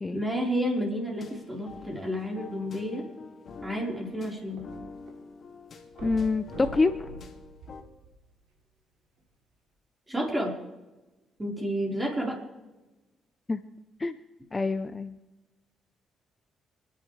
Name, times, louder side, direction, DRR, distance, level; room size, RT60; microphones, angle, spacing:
voice 1, 0.1-3.0 3.6-4.6 10.1-10.5 11.4-12.4, equal, 15° right, -1 dB, 4.4 m, -30 dB
sound 1, 1.2-7.8, left 4 dB, 50° left, 2.4 m, -46 dB
sound 2, 3.7-5.1 5.4-5.5 5.9-8.5 9.2-9.3, right 2 dB, 80° right, 3.0 m, -44 dB
voice 2, 6.0-7.1 13.5-13.6 14.0-14.2 14.5-15.2, left 3 dB, 25° left, 10 dB, 0.7 m, -26 dB
28.0 x 11.0 x 3.3 m, 1.1 s
cardioid pair, 90°, 0 cm